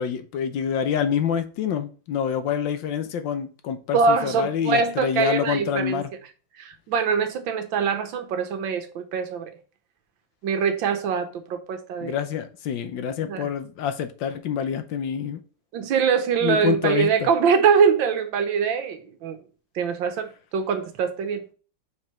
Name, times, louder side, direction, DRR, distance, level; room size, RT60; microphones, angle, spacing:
voice 1, 0.0-6.1 12.0-15.4 16.4-17.3, left 8 dB, 75° left, 1.5 m, -27 dB
voice 2, 3.9-6.0 6.6-9.5 10.4-12.2 13.3-13.5 15.7-19.4 19.7-21.4, right 6 dB, 80° right, 1.7 m, -23 dB
5.4 x 4.7 x 4.4 m
omnidirectional pair, 2.1 m